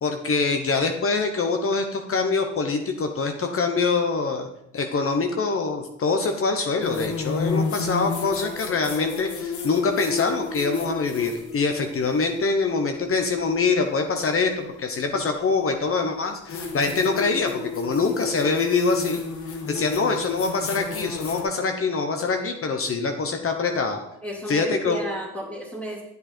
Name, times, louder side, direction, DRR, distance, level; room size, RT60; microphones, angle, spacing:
voice 1, 0.0-4.5 4.7-19.2 19.5-24.0 24.5-25.0, left 4 dB, 45° left, 5 dB, 1.1 m, -24 dB
sound 1, 6.8-12.3 14.3-14.4 16.5-21.4, left 4 dB, 75° left, 1.7 m, -31 dB
voice 2, 24.2-26.0, right 1 dB, 5° left, -6 dB, 2.5 m, -32 dB
9.6 x 7.6 x 4.4 m, 0.79 s
cardioid pair, 90°, 30 cm